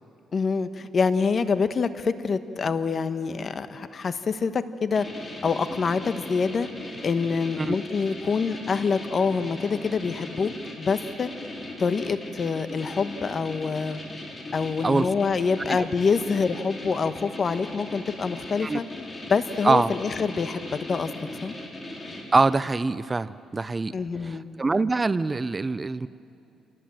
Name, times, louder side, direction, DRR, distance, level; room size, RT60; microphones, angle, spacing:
voice 1, 0.3-5.0 5.4-6.7 7.0-10.5 10.8-11.3 11.8-14.0 14.5-18.8 19.3-21.1 21.4-21.5 23.9-24.4, left 5 dB, 45° left, 11 dB, 1.1 m, -26 dB
sound 1, 5.0-22.7, left 1 dB, 25° left, 4.5 m, -39 dB
voice 2, 22.3-23.9 24.2-26.1, right 3 dB, 25° right, 16 dB, 0.5 m, -24 dB
28.0 x 18.5 x 7.7 m, 2.7 s
cardioid pair, 90°, 0 cm